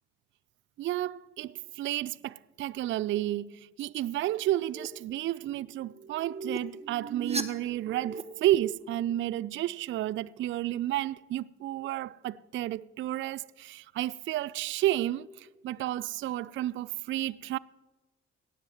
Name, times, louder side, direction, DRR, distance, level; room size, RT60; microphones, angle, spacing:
voice 1, 0.8-17.6, right 14 dB, 35° right, 0.4 m, -31 dB
sound 1, 4.7-4.9 5.8-8.2, right 4 dB, 20° right, 1.2 m, -37 dB
18.0 x 14.0 x 3.0 m
figure-of-eight pair, 45°, 35 cm